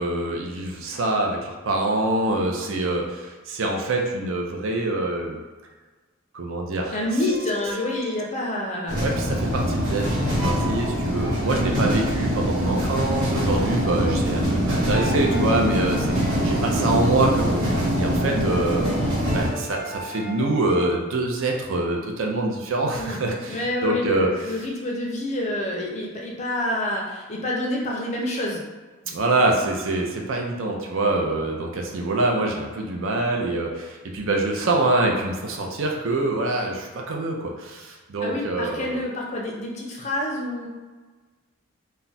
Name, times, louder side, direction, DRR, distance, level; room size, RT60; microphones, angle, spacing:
voice 1, 0.0-5.4 6.3-7.0 9.0-16.2 16.4-17.6 17.9-18.9 19.3-24.6 29.1-39.0, right 2 dB, 65° right, 1 dB, 0.5 m, -25 dB
voice 2, 6.9-9.1 23.0-23.2 23.5-28.6 38.2-40.7, left 1 dB, 30° left, -2 dB, 0.4 m, -27 dB
sound 1, 6.9-8.4 10.1-12.3 14.9-16.9 18.8-20.8, right 1 dB, 15° right, 0.6 m, -37 dB
sound 2, 8.9-19.5, equal, 80° right, 0.9 m, -23 dB
2.3 x 2.1 x 3.9 m, 1.3 s
head